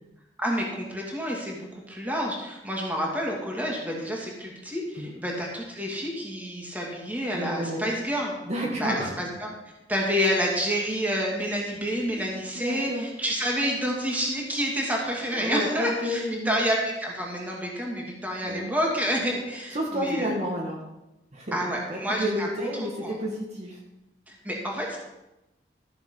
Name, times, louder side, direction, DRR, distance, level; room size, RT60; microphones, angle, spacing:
voice 1, 0.4-8.3 8.8-9.5 9.9-20.3 21.5-22.5 23.0-23.2 24.3-25.0, equal, 10° right, -2 dB, 2.7 m, -29 dB
voice 2, 7.3-7.9 8.5-9.1 12.1-12.2 12.5-13.0 15.3-16.6 18.4-18.7 19.7-20.8 21.3-21.6 21.9-23.8, equal, 40° right, -2 dB, 1.8 m, -30 dB
14.0 x 7.0 x 5.6 m, 0.96 s
head